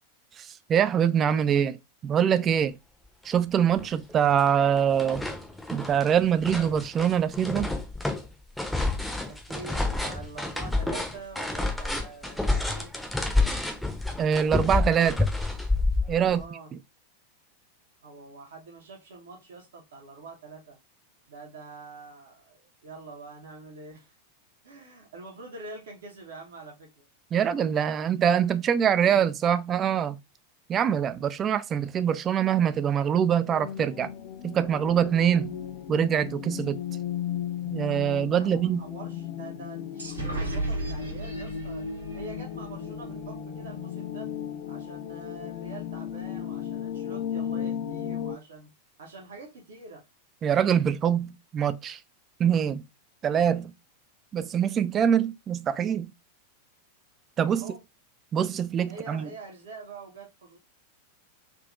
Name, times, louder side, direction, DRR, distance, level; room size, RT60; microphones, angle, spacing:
voice 1, 0.4-1.8 2.0-2.8 3.2-5.2 5.7-7.7 14.2-15.3 16.1-16.4 27.3-30.2 30.7-34.1 34.4-35.6 35.9-36.8 37.7-38.8 50.4-52.0 52.4-52.8 53.2-53.7 54.3-56.1 57.4-57.7 58.3-59.3, right 8 dB, 25° right, 0.3 m, -24 dB
sound 1, 3.3-3.4 3.8-4.5 4.8-16.4, left 2 dB, 5° left, 0.7 m, -29 dB
voice 2, 9.1-12.9 16.2-16.7 18.0-20.8 21.3-24.2 24.6-27.0 38.3-41.8 42.1-44.3 44.7-48.7 49.0-50.0 57.5-57.8 58.9-60.6, right 3 dB, 60° right, 0.9 m, -45 dB
sound 2, 33.5-48.4, left 9 dB, 50° left, 0.4 m, -35 dB
sound 3, 40.0-43.7, right 2 dB, 75° right, 1.3 m, -35 dB
3.7 x 2.8 x 2.4 m
figure-of-eight pair, 90°, 0 cm